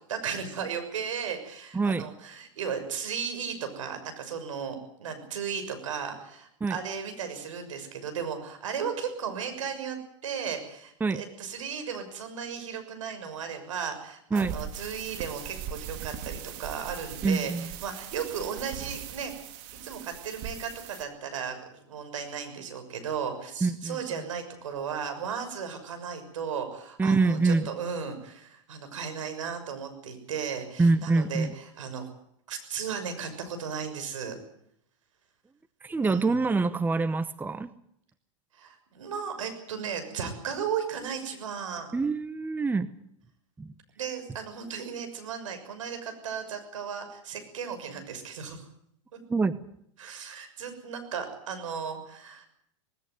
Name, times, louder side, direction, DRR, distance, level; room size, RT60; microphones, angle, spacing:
voice 1, 0.0-19.3 19.7-32.1 32.5-34.4 36.0-36.3 38.5-41.9 44.0-48.6 50.0-52.5, right 7 dB, 80° right, 7 dB, 6.4 m, -35 dB
voice 2, 1.7-2.1 6.6-6.8 11.0-11.2 14.3-14.5 17.2-17.7 23.6-24.0 27.0-27.7 30.8-31.5 35.8-37.7 41.9-42.9 43.6-43.7 49.3-49.6, right 3 dB, 10° right, 14 dB, 1.0 m, -25 dB
sound 1, 14.3-21.0, right 8 dB, 50° right, 3.0 m, -40 dB
19.5 x 17.5 x 9.5 m, 0.72 s
hypercardioid pair, 105°, 16 cm